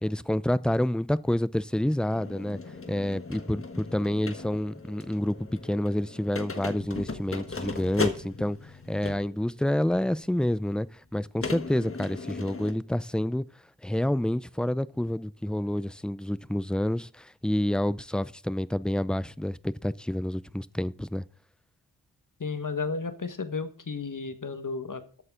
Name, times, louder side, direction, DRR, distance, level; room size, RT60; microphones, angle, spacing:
voice 1, 0.0-2.6 2.9-13.4 13.8-21.2, left 1 dB, ahead, 0.4 m, -28 dB
sound 1, 2.1-9.4 10.2-10.3 11.4-12.7, left 4 dB, 30° left, 1.5 m, -37 dB
voice 2, 22.4-25.2, left 4 dB, 45° left, 1.5 m, -33 dB
13.5 x 8.8 x 3.7 m
wide cardioid pair, 110°, 43 cm